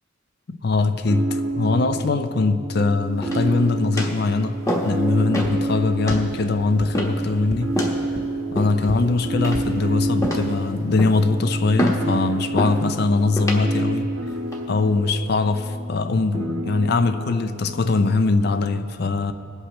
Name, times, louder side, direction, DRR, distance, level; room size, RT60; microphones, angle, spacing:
voice 1, 0.5-7.8 8.5-14.1 14.7-19.3, left 3 dB, 55° left, 0.5 m, -22 dB
sound 1, 1.1-18.5, right 2 dB, 85° right, 1.1 m, -30 dB
sound 2, 3.2-3.6 4.0-4.2 4.7-5.0 5.3-5.6 6.1-6.3 6.9-7.3 7.7-8.0 8.6-9.0 9.4-9.8 10.2-10.6 11.0-11.3 11.8-12.1 12.6-12.8 13.4-13.6 14.3-14.6, equal, 15° left, 1.2 m, -26 dB
sound 3, 5.4-5.5 6.1-6.2 6.8-6.9 7.5-7.6 8.1-8.2 8.8-8.9 9.5-9.6 10.1-10.3, right 1 dB, 35° right, 0.7 m, -31 dB
21.5 x 8.1 x 3.0 m
head